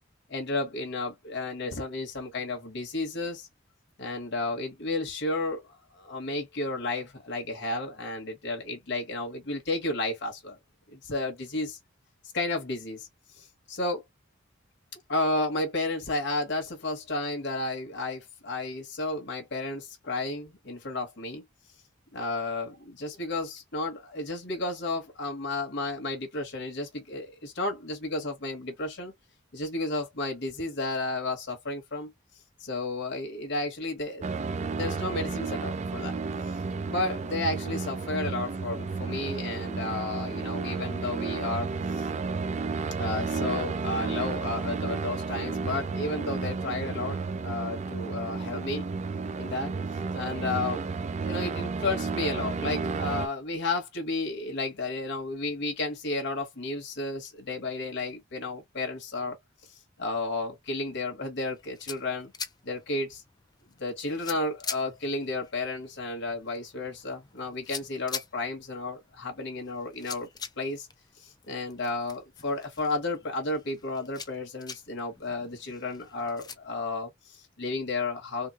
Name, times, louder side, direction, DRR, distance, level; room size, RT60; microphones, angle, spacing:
voice 1, 0.3-3.5 4.0-10.6 10.9-11.8 12.3-14.0 14.9-21.4 22.1-29.1 29.5-32.1 32.6-34.2 34.8-36.1 36.9-42.1 43.0-48.8 49.4-49.7 50.1-50.8 51.2-59.4 59.7-62.3 62.6-63.2 63.8-70.3 70.6-70.9 71.2-78.5, left 2 dB, 65° left, 1.2 m, -32 dB
sound 1, 34.2-53.3, right 4 dB, 35° right, 0.4 m, -32 dB
sound 2, 61.4-76.6, left 6 dB, 20° left, 0.5 m, -44 dB
3.5 x 2.9 x 2.4 m
head